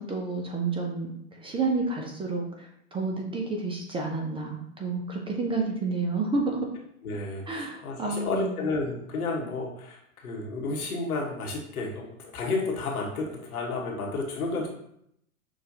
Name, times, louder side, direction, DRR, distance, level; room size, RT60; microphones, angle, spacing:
voice 1, 0.0-6.7 7.5-8.6, right 3 dB, 15° right, 0 dB, 0.5 m, -30 dB
voice 2, 7.0-14.7, left 3 dB, 80° left, -1 dB, 1.3 m, -31 dB
6.3 x 2.4 x 2.7 m, 0.72 s
hypercardioid pair, 105°, 43 cm